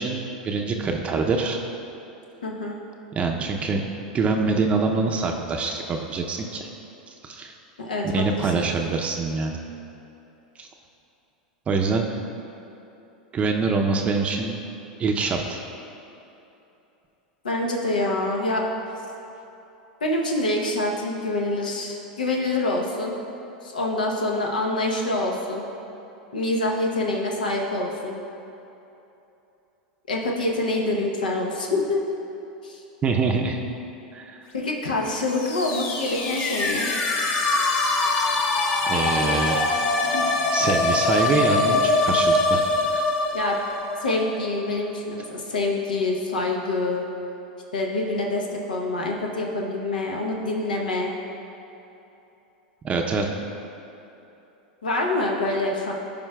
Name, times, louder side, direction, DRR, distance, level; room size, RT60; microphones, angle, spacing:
voice 1, 0.0-1.6 3.1-6.7 7.2-7.5 8.0-9.6 10.6-10.7 11.7-12.1 13.3-14.6 15.0-15.6 33.0-33.6 34.1-34.4 38.9-39.6 40.5-43.1 52.8-53.3, right 4 dB, 30° right, 2 dB, 0.5 m, -25 dB
voice 2, 2.4-2.8 7.8-8.6 17.4-18.7 20.0-23.2 23.6-25.7 26.3-28.2 30.1-32.0 32.6-32.8 34.5-36.9 40.1-40.2 43.3-43.6 44.0-47.1 47.7-51.1 54.8-55.9, left 2 dB, 90° left, 0 dB, 0.8 m, -26 dB
sound 1, 35.2-44.9, left 2 dB, 40° left, 0.9 m, -23 dB
14.0 x 5.2 x 2.3 m, 2.9 s
hypercardioid pair, 95°, 4 cm